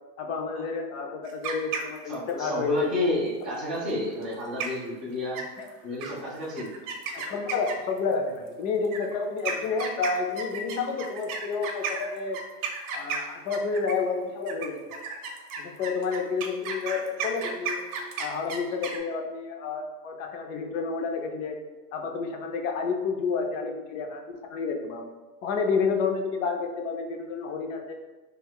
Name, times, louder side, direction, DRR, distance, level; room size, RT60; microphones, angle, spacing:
voice 1, 0.2-2.9 5.6-5.7 7.1-12.4 12.9-14.8 15.6-17.8 18.2-21.6 21.9-25.0 25.4-27.9, left 4 dB, 55° left, 3 dB, 0.5 m, -30 dB
sound 1, 1.2-2.3 4.2-4.3 4.6-4.9 5.3-5.7 6.0-6.1 6.6-8.0 8.8-14.1 14.5-19.0, right 5 dB, 65° right, 0.6 m, -33 dB
voice 2, 2.0-5.4 5.8-6.7, left 2 dB, ahead, -11 dB, 0.3 m, -30 dB
2.3 x 2.3 x 3.4 m, 1.2 s
supercardioid pair, 135°, 47 cm